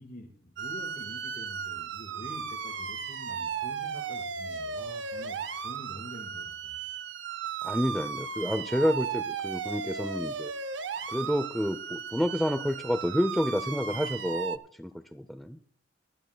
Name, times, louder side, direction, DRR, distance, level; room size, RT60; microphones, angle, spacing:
voice 1, 0.0-5.4 5.6-6.8, left 1 dB, 45° left, 0 dB, 4.8 m, -46 dB
sound 1, 0.6-14.6, right 6 dB, 70° right, 0.6 m, -36 dB
voice 2, 7.6-10.5 11.1-15.6, equal, ahead, 8 dB, 0.5 m, -29 dB
22.5 x 12.5 x 2.2 m, 0.65 s
head